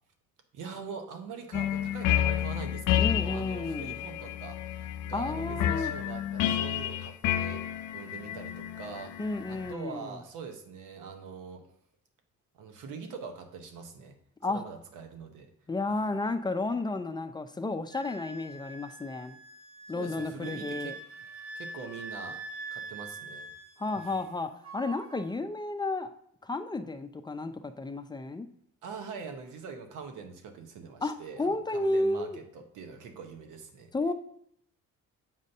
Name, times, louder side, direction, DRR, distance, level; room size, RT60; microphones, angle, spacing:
voice 1, 0.5-7.6 7.9-9.1 9.5-11.7 12.5-14.2 14.5-15.5 19.9-21.0 21.5-22.4 22.7-23.5 24.0-24.1 28.8-33.9, right 5 dB, 90° right, 5 dB, 1.0 m, -43 dB
sound 1, 1.5-9.7, left 11 dB, 85° left, 0.4 m, -30 dB
voice 2, 3.0-4.0 5.1-5.9 9.2-10.1 14.4-14.6 15.7-19.4 19.9-20.9 23.8-26.1 26.4-28.5 31.0-32.4 33.9-34.1, left 2 dB, 15° left, 8 dB, 0.5 m, -32 dB
Wind instrument woodwind instrument, 17.9-24.3 24.6-25.3, right 3 dB, 45° right, 0.9 m, -44 dB
7.4 x 2.6 x 5.4 m, 0.69 s
cardioid pair, 90°, 30 cm